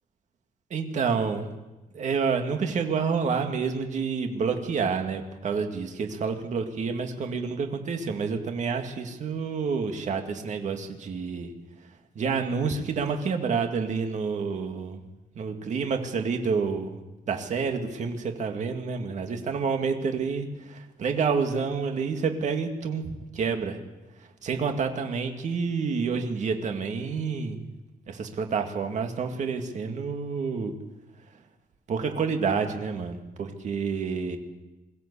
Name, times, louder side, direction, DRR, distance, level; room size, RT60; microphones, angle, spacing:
voice 1, 0.7-1.6 1.9-11.5 12.2-15.0 15.4-17.0 17.3-23.8 24.4-27.7 28.1-30.7 31.9-34.4, right 5 dB, 55° right, 5 dB, 2.2 m, -28 dB
22.5 x 16.0 x 8.4 m, 1.1 s
wide cardioid pair, 170°, 15 cm